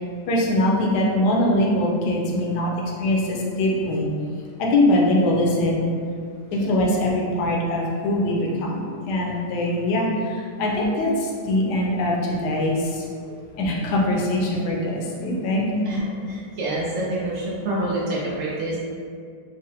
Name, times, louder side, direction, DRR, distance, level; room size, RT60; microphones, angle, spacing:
voice 1, 0.3-2.7 3.0-4.1 4.6-5.9 6.5-13.1 13.6-15.7, left 1 dB, 80° left, -2 dB, 1.2 m, -22 dB
voice 2, 15.8-18.8, right 1 dB, 90° right, -6 dB, 0.6 m, -27 dB
3.8 x 2.0 x 2.7 m, 2.2 s
omnidirectional pair, 1.8 m